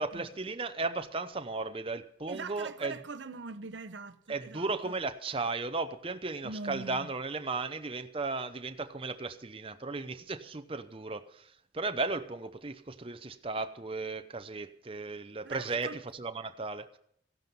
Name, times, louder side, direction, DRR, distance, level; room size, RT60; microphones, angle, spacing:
voice 1, 0.0-2.9 4.3-11.5 11.7-17.0, right 3 dB, 30° right, 0.7 m, -35 dB
voice 2, 2.3-5.0 6.4-7.1 15.4-16.0, right 3 dB, 85° right, 0.9 m, -42 dB
15.5 x 11.5 x 5.4 m
head